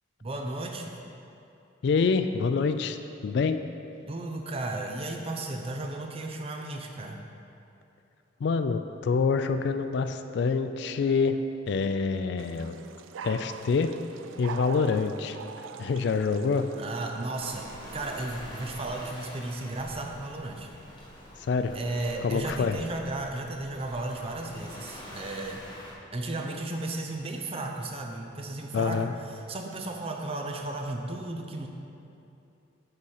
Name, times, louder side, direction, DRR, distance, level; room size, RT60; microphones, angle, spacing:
voice 1, 0.2-0.9 4.1-7.2 16.8-17.7 17.9-20.7 21.7-25.6 26.1-31.7, right 2 dB, 30° right, 2 dB, 0.6 m, -34 dB
voice 2, 1.8-3.0 3.2-3.6 8.4-11.4 11.7-12.8 13.2-13.9 14.4-15.4 15.8-16.7 21.4-21.8 22.2-22.8 28.7-29.1, left 5 dB, 60° left, 9 dB, 0.3 m, -26 dB
sound 1, 12.4-18.1, right 6 dB, 80° right, 0.3 m, -43 dB
Waves surf, 17.3-25.9, equal, 25° left, 1.1 m, -46 dB
6.6 x 4.8 x 5.6 m, 2.7 s
head